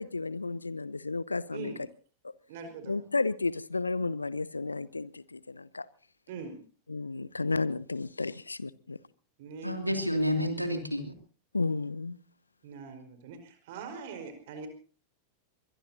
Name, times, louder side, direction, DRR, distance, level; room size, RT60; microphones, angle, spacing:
voice 1, 0.0-1.7 2.9-5.9 6.9-9.0 11.5-12.2, left 3 dB, 80° left, 0.8 m, -32 dB
voice 2, 1.5-1.8 2.5-3.0 6.3-6.6 9.4-9.8 12.6-14.7, right 5 dB, 50° right, 4.9 m, -42 dB
voice 3, 9.6-11.0, equal, 90° right, 2.6 m, -29 dB
23.5 x 21.5 x 2.8 m
figure-of-eight pair, 90°, 0 cm